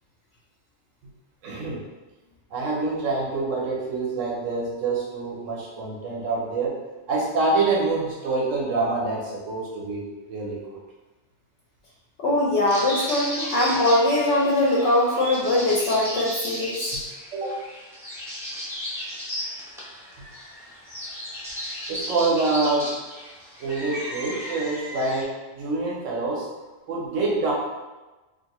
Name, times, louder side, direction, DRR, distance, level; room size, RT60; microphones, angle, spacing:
voice 1, 1.4-1.8 2.5-6.8 7.1-10.6 16.9-17.0 17.3-17.6 21.9-22.9 23.6-26.5 26.9-27.5, right 3 dB, 85° right, -3 dB, 1.1 m, -26 dB
voice 2, 12.2-16.9, left 1 dB, 65° left, -4 dB, 0.8 m, -21 dB
sound 1, 12.7-25.2, equal, 5° right, 0.5 m, -34 dB
2.6 x 2.5 x 2.9 m, 1.1 s
omnidirectional pair, 1.3 m